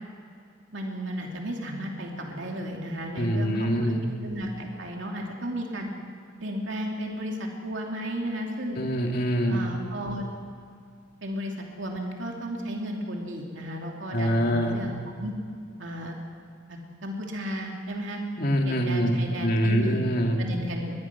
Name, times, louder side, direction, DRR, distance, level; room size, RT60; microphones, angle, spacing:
voice 1, 0.7-3.9 4.2-5.9 6.4-8.8 9.5-10.2 11.2-15.3 15.8-16.2 16.7-18.2 18.6-20.0 20.4-20.9, equal, 75° right, 0 dB, 2.8 m, -34 dB
voice 2, 3.2-4.0 8.8-9.6 14.1-14.8 18.4-20.4, equal, 50° left, 1 dB, 2.9 m, -24 dB
22.0 x 21.5 x 6.1 m, 2.3 s
head